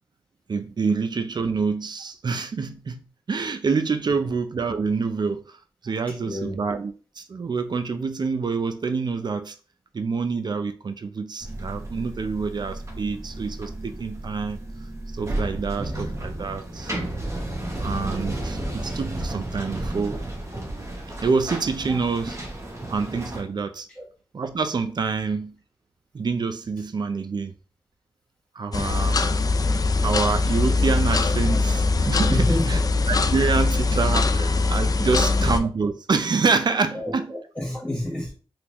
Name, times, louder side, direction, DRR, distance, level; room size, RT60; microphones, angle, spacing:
voice 1, 0.5-9.6 9.9-14.6 15.1-16.9 17.8-20.2 21.2-22.4 22.9-23.9 24.3-25.5 26.1-27.5 28.6-29.2 30.0-32.8 33.1-37.3, right 4 dB, 50° right, 0.4 m, -27 dB
voice 2, 6.1-6.6 21.9-22.0 23.9-24.1 31.5-31.8 32.3-32.9 34.4-34.5 35.1-35.5 36.9-38.3, left 1 dB, 15° left, 1.1 m, -30 dB
sound 1, 11.4-23.4, right 1 dB, 30° right, 0.8 m, -32 dB
sound 2, 28.7-35.6, left 3 dB, 40° left, 0.3 m, -22 dB
3.6 x 2.3 x 2.9 m
cardioid pair, 70°, 10 cm